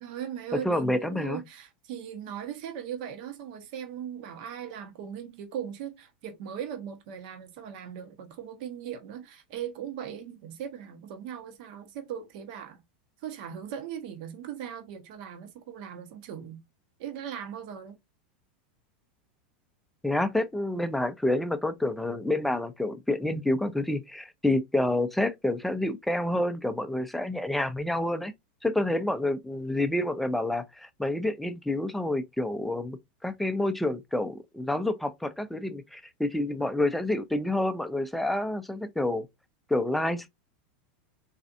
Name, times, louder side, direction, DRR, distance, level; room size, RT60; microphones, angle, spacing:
voice 1, 0.0-12.8 13.2-16.6 17.0-18.0, right 9 dB, 55° right, 0.9 m, -39 dB
voice 2, 0.6-1.4 20.0-28.3 28.6-39.3 39.7-40.3, left 1 dB, ahead, 0.4 m, -28 dB
4.1 x 2.4 x 2.5 m
supercardioid pair, 150°, 5 cm